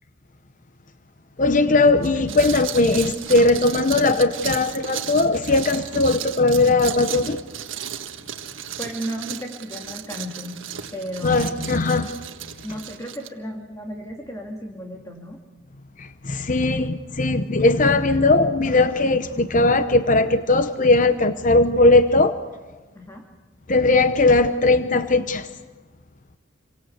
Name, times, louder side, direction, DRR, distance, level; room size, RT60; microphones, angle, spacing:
voice 1, 1.4-7.4 11.2-12.1 16.0-22.4 23.7-25.5, left 2 dB, 40° left, 0.8 m, -19 dB
sound 1, 2.0-13.3, right 9 dB, 75° right, 1.7 m, -34 dB
voice 2, 8.8-10.6 10.9-11.7 12.6-15.4 22.9-23.2, equal, 15° left, 2.4 m, -34 dB
28.5 x 24.0 x 8.1 m
head